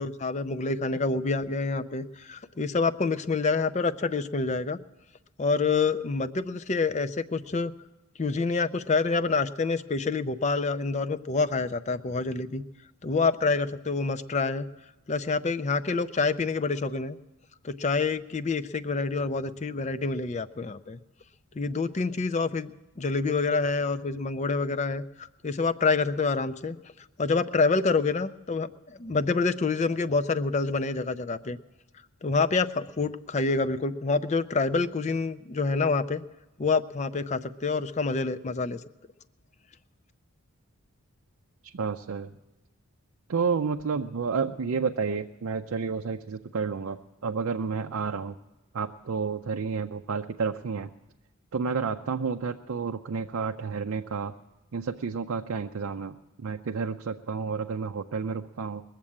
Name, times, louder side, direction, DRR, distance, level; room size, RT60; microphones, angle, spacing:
voice 1, 0.0-4.8 5.4-7.7 8.2-12.6 13.0-14.7 15.1-17.2 17.6-21.0 21.5-22.7 23.0-26.8 27.2-31.6 32.2-36.2 36.6-38.8, left 4 dB, 30° left, 13 dB, 0.4 m, -27 dB
voice 2, 41.6-42.3 43.3-48.4 48.7-50.9 51.5-54.3 54.7-58.8, right 5 dB, 70° right, 4 dB, 0.5 m, -30 dB
21.0 x 7.4 x 8.6 m, 1.1 s
head